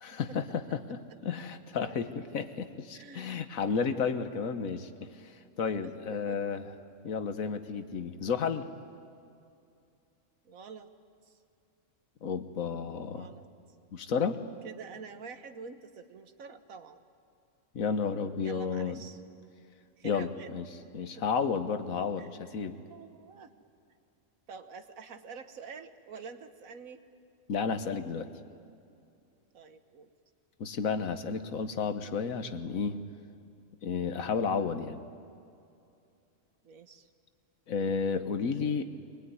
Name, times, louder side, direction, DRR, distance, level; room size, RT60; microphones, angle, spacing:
voice 1, 0.0-5.3 5.6-6.6 7.0-8.7 12.2-13.3 13.9-14.4 17.7-19.0 20.0-20.7 20.9-22.8 27.5-28.3 30.6-33.0 33.8-35.0 37.7-38.9, left 5 dB, 85° left, 9 dB, 1.6 m, -32 dB
voice 2, 2.9-3.5 5.8-6.4 10.4-10.9 11.2-11.4 13.1-13.5 14.6-17.0 18.4-19.2 20.0-20.5 21.2-21.3 22.1-23.5 24.5-27.1 29.5-30.1 36.6-37.1, right 5 dB, 90° right, 9 dB, 1.7 m, -47 dB
24.0 x 20.5 x 9.6 m, 2.5 s
omnidirectional pair, 1.4 m